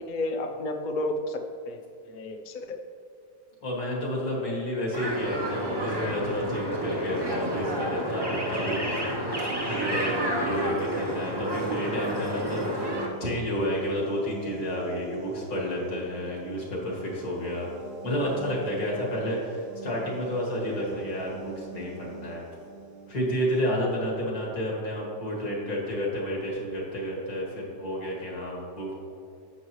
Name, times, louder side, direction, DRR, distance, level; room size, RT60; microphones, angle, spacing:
voice 1, 0.1-1.4 1.7-1.8 2.1-2.8 4.5-4.7 18.9-19.1 20.6-20.8, left 2 dB, 85° left, 4 dB, 0.4 m, -32 dB
voice 2, 3.6-9.0 9.7-17.7 18.0-22.4 23.1-28.9, equal, 60° left, -3 dB, 2.5 m, -30 dB
sound 1, 4.9-13.1, right 1 dB, 20° right, 0.8 m, -30 dB
sound 2, 10.6-24.2, right 4 dB, 75° right, 1.8 m, -45 dB
10.5 x 7.8 x 3.1 m, 2.5 s
omnidirectional pair, 1.8 m